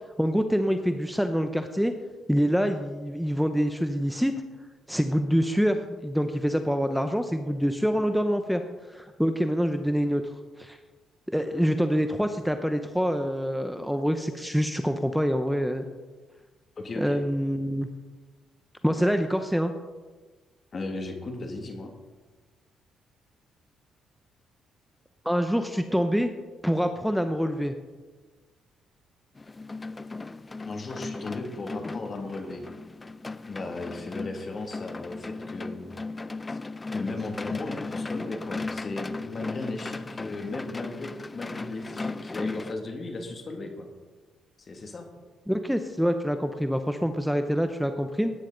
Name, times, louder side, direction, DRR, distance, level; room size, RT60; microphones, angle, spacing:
voice 1, 0.2-1.9 2.3-4.4 4.9-8.6 8.9-10.8 11.3-15.8 17.0-17.9 18.8-19.7 25.2-26.3 26.6-27.7 45.5-48.3, equal, ahead, 7 dB, 0.8 m, -26 dB
voice 2, 16.8-17.2 20.7-21.9 30.7-32.6 33.5-35.9 36.5-36.6 36.9-43.9 44.6-45.1, left 2 dB, 40° left, 3 dB, 2.2 m, -36 dB
sound 1, 29.4-42.7, left 3 dB, 25° left, 0.5 m, -36 dB
17.0 x 10.0 x 3.9 m, 1.3 s
cardioid pair, 90°, 0 cm